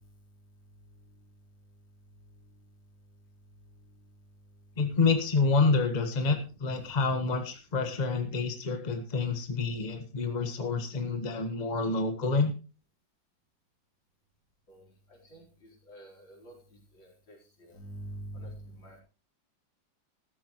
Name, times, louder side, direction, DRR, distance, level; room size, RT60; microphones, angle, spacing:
voice 1, 4.8-12.5, left 4 dB, 25° left, 6 dB, 1.5 m, -28 dB
voice 2, 15.9-16.5 17.7-18.5 18.8-19.0, right 1 dB, 75° left, -2 dB, 5.0 m, -43 dB
14.0 x 13.5 x 3.1 m, 0.32 s
omnidirectional pair, 2.1 m